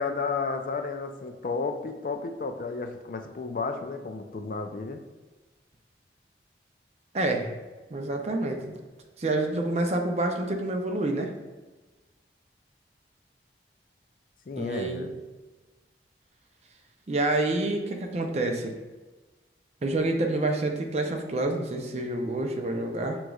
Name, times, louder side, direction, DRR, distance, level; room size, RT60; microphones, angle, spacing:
voice 1, 0.0-5.0 14.5-15.2, left 4 dB, 50° left, 6 dB, 0.4 m, -32 dB
voice 2, 7.1-7.5 7.9-8.7 9.2-11.3 14.6-15.1 17.1-18.7 19.8-23.2, right 2 dB, 35° right, 3 dB, 0.5 m, -28 dB
6.3 x 3.0 x 2.3 m, 1.2 s
head